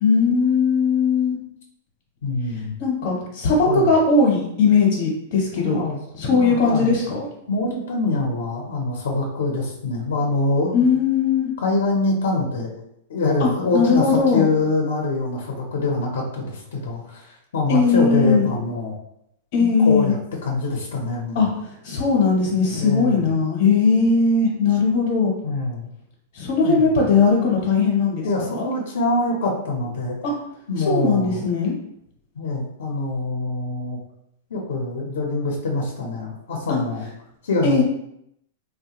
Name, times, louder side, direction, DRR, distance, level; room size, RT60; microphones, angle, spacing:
voice 1, 0.0-1.4 2.8-5.8 6.2-7.2 10.7-11.5 13.4-14.5 17.7-18.5 19.5-20.1 21.3-21.5 21.8-25.3 26.3-28.2 28.5-28.7 30.2-30.3 30.9-31.7 36.7-36.8 37.6-37.8, left 4 dB, 55° left, -3 dB, 0.8 m, -19 dB
voice 2, 2.2-2.7 3.6-3.9 5.6-6.0 6.3-7.0 7.5-10.9 11.6-12.7 13.1-18.9 19.6-21.5 22.3-23.3 25.4-25.9 26.6-26.9 28.2-30.2 30.7-31.4 32.3-34.0 34.5-37.1 37.4-37.8, left 2 dB, 85° left, -1 dB, 0.6 m, -24 dB
3.1 x 2.1 x 2.9 m, 0.77 s
supercardioid pair, 165°, 0 cm